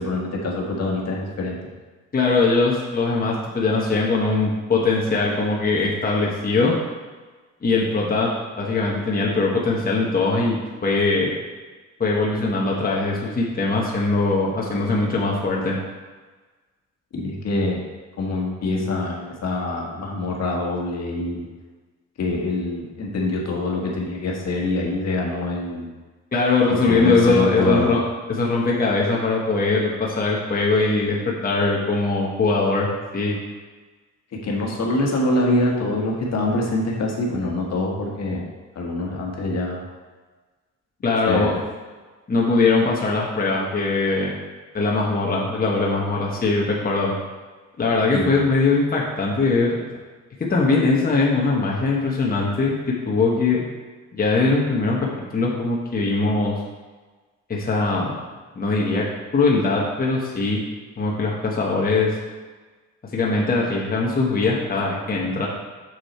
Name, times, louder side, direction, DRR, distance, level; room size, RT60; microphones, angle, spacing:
voice 1, 0.0-1.6 17.1-17.8 18.2-21.5 22.2-25.9 26.7-27.9 34.4-38.4 38.7-39.8 41.3-41.6 48.1-48.5, left 2 dB, 60° left, -2 dB, 1.7 m, -25 dB
voice 2, 2.1-6.8 7.6-11.3 12.0-15.8 26.3-28.0 28.3-33.4 41.0-41.5 42.3-44.3 44.7-47.1 47.8-49.8 50.5-53.6 54.1-56.6 57.5-58.1 58.6-59.1 59.3-60.6 61.0-62.1 63.1-65.5, left 3 dB, 30° left, -3 dB, 1.2 m, -21 dB
6.6 x 6.1 x 4.4 m, 1.3 s
cardioid pair, 90°, 30 cm